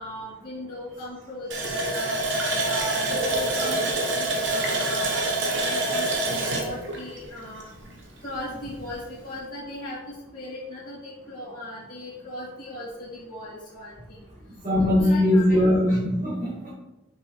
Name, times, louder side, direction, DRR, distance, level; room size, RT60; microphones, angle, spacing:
voice 1, 0.0-2.2 2.6-7.7 8.2-14.2 14.8-15.7, left 1 dB, 45° left, -14 dB, 2.1 m, -37 dB
Water tap faucet, 1.5-8.0 8.3-8.4 8.9-9.0, right 2 dB, 60° right, 0.9 m, -26 dB
voice 2, 14.6-16.7, left 1 dB, 35° right, -9 dB, 1.6 m, -21 dB
5.9 x 5.2 x 3.2 m, 1.0 s
head